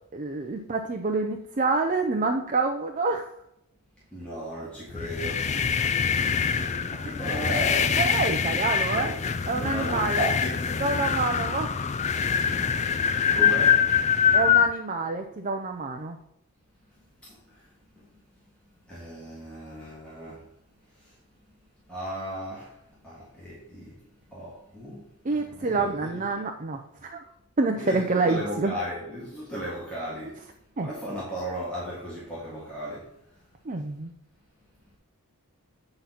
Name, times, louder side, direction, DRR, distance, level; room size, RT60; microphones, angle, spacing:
voice 1, 0.1-3.3 7.9-9.1 9.5-10.3 10.8-11.7 14.3-16.2 25.2-27.2 27.6-28.7 30.8-30.9 33.7-34.1, right 3 dB, 35° right, 3 dB, 0.5 m, -27 dB
voice 2, 4.1-5.4 6.3-8.0 8.5-8.6 8.9-9.2 9.4-10.6 12.6-13.0 13.3-13.9 17.2-17.6 18.0-18.1 18.9-20.4 21.0-21.1 21.9-22.8 23.0-23.9 24.3-26.4 27.8-30.4 30.8-33.1, equal, 5° left, -8 dB, 1.7 m, -36 dB
sound 1, 4.9-14.7, left 7 dB, 30° left, 0.4 m, -24 dB
8.5 x 3.9 x 5.8 m, 0.77 s
head